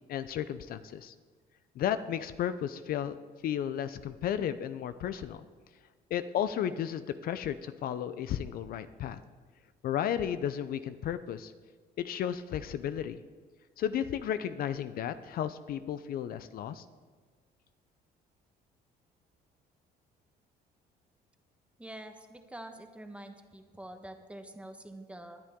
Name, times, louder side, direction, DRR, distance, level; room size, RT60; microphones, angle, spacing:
voice 1, 0.1-1.1 1.8-3.2 3.4-5.4 6.1-9.2 9.8-11.5 12.0-13.2 13.8-16.8, left 9 dB, 60° left, 12 dB, 0.5 m, -33 dB
voice 2, 21.8-25.4, right 1 dB, 5° right, 6 dB, 1.2 m, -46 dB
19.5 x 10.5 x 3.7 m, 1.5 s
cardioid pair, 110°, 17 cm